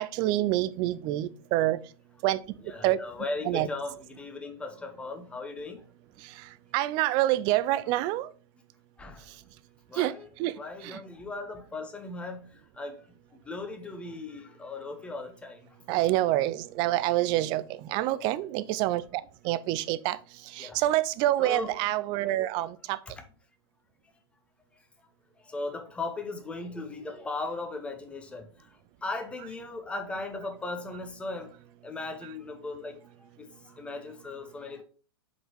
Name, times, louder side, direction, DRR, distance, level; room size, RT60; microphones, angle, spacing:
voice 1, 0.0-1.8 2.2-2.4 2.8-3.0 3.4-3.7 6.2-8.3 9.3-9.4 9.9-10.6 10.8-11.0 15.9-23.0 32.2-32.3, right 15 dB, 30° right, 0.4 m, -27 dB
voice 2, 2.7-5.8 9.0-9.3 9.9-10.3 10.6-12.5 12.8-13.0 13.5-15.6 18.3-18.4 20.6-20.8 21.4-21.7 25.5-28.5 29.0-31.5 31.8-33.0 33.4-33.5 33.7-34.8, left 3 dB, 10° left, 0.8 m, -37 dB
5.2 x 3.9 x 4.6 m
hypercardioid pair, 145°, 14 cm